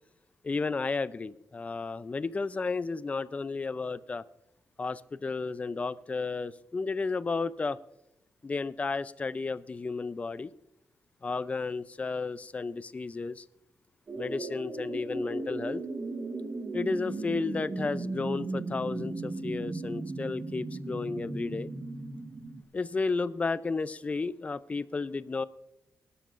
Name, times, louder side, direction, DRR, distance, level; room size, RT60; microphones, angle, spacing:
voice 1, 0.4-4.2 4.8-7.8 8.4-10.5 11.2-13.4 14.2-15.8 16.7-21.7 22.7-25.5, left 4 dB, 25° left, 16 dB, 0.4 m, -33 dB
sound 1, 14.1-22.6, right 3 dB, 35° right, 1.2 m, -36 dB
20.5 x 12.5 x 2.5 m, 0.86 s
wide cardioid pair, 145°, 5 cm